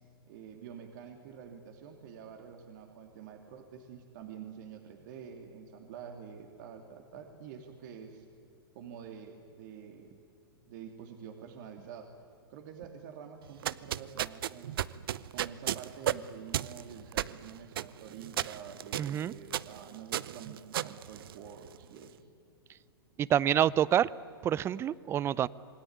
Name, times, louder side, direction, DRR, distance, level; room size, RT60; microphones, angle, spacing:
voice 1, 0.2-8.3 8.7-10.1 10.7-12.1 12.5-14.7 15.3-22.2, right 7 dB, 50° right, 5 dB, 2.7 m, -47 dB
sound 1, 13.5-21.8, right 11 dB, 65° right, 0.7 m, -35 dB
voice 2, 19.0-19.3 23.2-24.1 24.4-25.5, right 10 dB, 20° right, 22 dB, 0.5 m, -27 dB
27.5 x 20.0 x 9.6 m, 2.4 s
hypercardioid pair, 130°, 13 cm